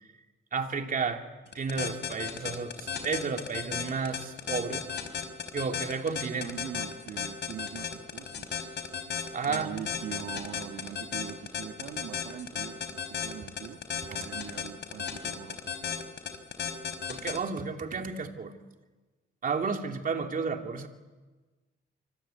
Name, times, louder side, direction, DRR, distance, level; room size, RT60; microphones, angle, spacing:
voice 1, 0.5-1.3 1.5-4.8 5.5-6.6 9.3-9.7 17.1-18.5 19.4-20.9, right 5 dB, 45° right, 4 dB, 3.0 m, -32 dB
sound 1, 1.5-17.4, left 7 dB, 60° left, 4.5 m, -34 dB
voice 2, 6.3-8.8 9.5-13.8 14.1-15.7, right 9 dB, 80° right, 5 dB, 1.8 m, -42 dB
26.5 x 25.0 x 8.3 m, 1.3 s
cardioid pair, 90°, 20 cm